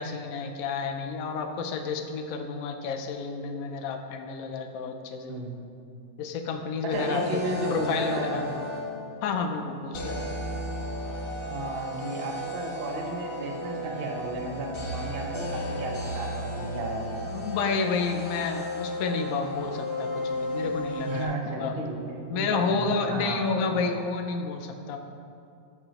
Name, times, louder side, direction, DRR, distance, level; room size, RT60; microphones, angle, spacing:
voice 1, 0.0-5.4 6.2-7.4 7.7-8.4 9.2-10.2 17.3-21.8 22.3-25.0, left 4 dB, 65° left, 4 dB, 0.9 m, -30 dB
voice 2, 5.3-5.6 6.8-8.5 11.5-17.2 21.1-23.8, right 2 dB, 45° right, 0 dB, 0.8 m, -33 dB
sound 1, 6.9-9.2 9.9-21.3, left 1 dB, 35° left, 1.2 m, -34 dB
12.5 x 4.9 x 2.9 m, 2.5 s
omnidirectional pair, 1.9 m